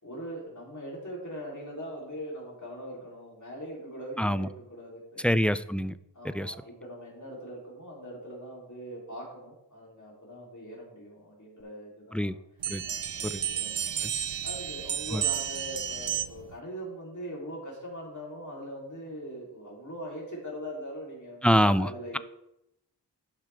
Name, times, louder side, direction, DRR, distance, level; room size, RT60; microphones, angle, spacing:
voice 1, 0.0-5.3 6.1-12.3 12.8-14.1 14.4-22.2, equal, 45° left, -4 dB, 3.5 m, -41 dB
voice 2, 4.2-4.5 5.2-5.9 6.2-6.5 12.1-12.3 12.7-12.8 13.2-13.4 15.1-15.2 21.4-21.9, equal, 5° left, 14 dB, 0.4 m, -25 dB
sound 1, 12.6-16.5, right 9 dB, 85° right, 0.6 m, -32 dB
11.5 x 7.2 x 3.5 m, 0.84 s
wide cardioid pair, 55°, 42 cm